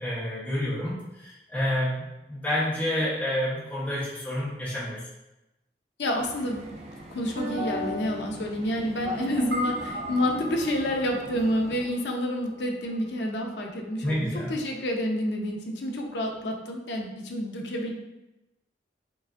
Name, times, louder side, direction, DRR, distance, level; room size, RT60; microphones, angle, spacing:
voice 1, 0.0-5.1 14.0-14.5, left 1 dB, 10° left, -9 dB, 0.8 m, -29 dB
voice 2, 6.0-6.7 7.1-17.9, equal, 80° left, 1 dB, 0.6 m, -29 dB
sound 1, 6.2-11.8, left 1 dB, 40° right, 0.4 m, -37 dB
sound 2, 9.5-14.1, left 1 dB, 70° right, 0.7 m, -38 dB
4.7 x 2.5 x 2.4 m, 0.95 s
head